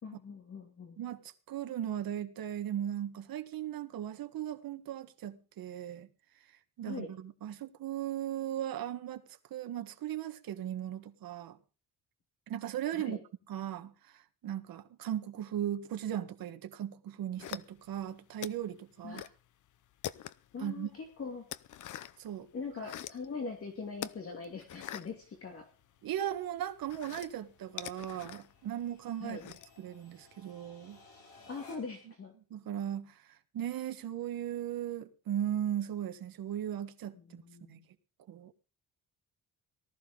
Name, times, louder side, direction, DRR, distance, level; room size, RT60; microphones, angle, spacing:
voice 1, 0.0-1.0 6.8-7.1 12.9-13.2 19.0-19.3 20.5-21.5 22.5-25.6 29.2-29.5 31.5-32.3 37.1-37.9, left 4 dB, 35° left, 2.6 m, -42 dB
voice 2, 1.0-6.1 6.8-9.2 9.5-11.6 12.5-13.2 13.5-19.2 20.6-20.9 22.2-22.5 26.0-31.0 32.5-33.2 33.5-37.4 37.7-37.8 38.3-38.5, right 11 dB, 70° right, 1.6 m, -37 dB
sound 1, 17.4-18.0 18.4-19.4 19.7-20.6 21.0-22.3 22.6-23.3 23.9-26.0 26.3-29.8, left 11 dB, 55° left, 0.7 m, -44 dB
sound 2, 22.2-32.1, left 3 dB, 70° left, 5.5 m, -62 dB
19.0 x 13.5 x 3.9 m
cardioid pair, 165°, 37 cm